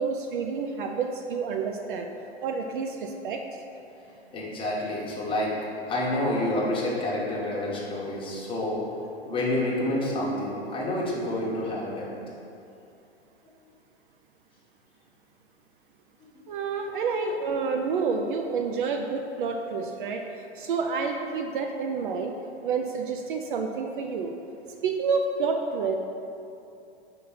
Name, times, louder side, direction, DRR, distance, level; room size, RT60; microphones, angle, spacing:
voice 1, 0.0-2.1 2.4-3.6 16.5-20.2 20.6-22.3 22.6-24.3 24.8-26.0, right 5 dB, 50° right, 4 dB, 0.5 m, -29 dB
voice 2, 4.3-5.6 5.9-8.8 9.2-12.1, left 1 dB, 15° left, -5 dB, 1.2 m, -28 dB
5.4 x 3.9 x 5.7 m, 2.8 s
hypercardioid pair, 115°, 33 cm